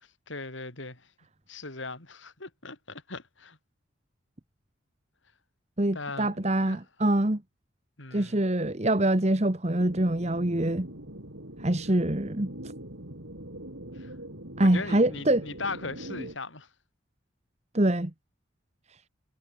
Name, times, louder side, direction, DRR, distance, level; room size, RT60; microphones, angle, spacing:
voice 1, 0.3-1.1 1.5-3.6 5.9-6.8 8.0-8.4 13.9-14.1 14.7-16.7, left 3 dB, 75° left, 4.5 m, -39 dB
voice 2, 5.8-7.4 8.1-10.9 11.6-12.5 14.6-15.5 17.7-18.1, right 1 dB, 35° right, 1.5 m, -25 dB
sound 1, 9.8-16.3, right 1 dB, 75° right, 7.7 m, -42 dB
head